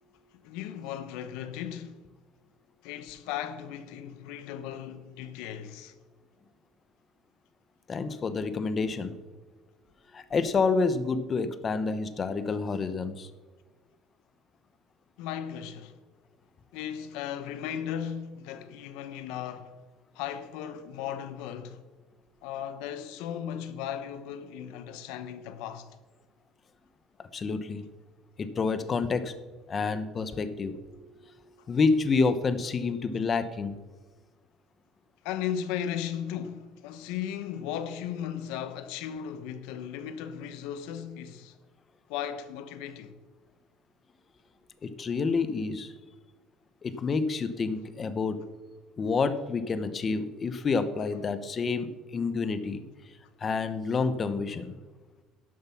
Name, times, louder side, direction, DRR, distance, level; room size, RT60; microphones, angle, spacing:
voice 1, 0.4-2.1 2.8-5.9 15.2-15.9 16.7-19.7 20.1-21.8 22.4-25.9 35.2-41.5 42.1-43.2, left 9 dB, 85° left, 1.0 m, -36 dB
voice 2, 7.9-9.2 10.1-13.3 27.3-27.8 28.4-29.3 29.7-31.1 31.7-33.7 44.8-45.9 46.8-48.4 49.0-52.8 53.4-54.7, left 4 dB, 25° left, 0.8 m, -28 dB
11.5 x 7.5 x 5.8 m
cardioid pair, 150°, 0 cm